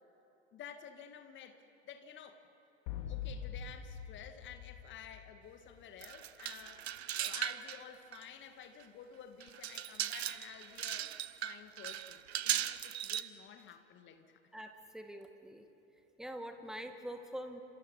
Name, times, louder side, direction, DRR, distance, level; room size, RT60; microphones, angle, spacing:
voice 1, 0.5-2.5 3.1-11.1 11.4-14.4, left 8 dB, 35° left, 8 dB, 2.1 m, -52 dB
sound 1, 2.9-5.7, left 8 dB, 50° left, 2.4 m, -43 dB
sound 2, 6.0-7.8 8.1-8.2 8.8-8.9 9.4-13.2, right 11 dB, 70° right, 0.9 m, -38 dB
voice 2, 14.5-15.7 16.2-17.6, equal, ahead, 6 dB, 1.9 m, -45 dB
29.5 x 26.5 x 5.5 m, 3.0 s
figure-of-eight pair, 80°, 34 cm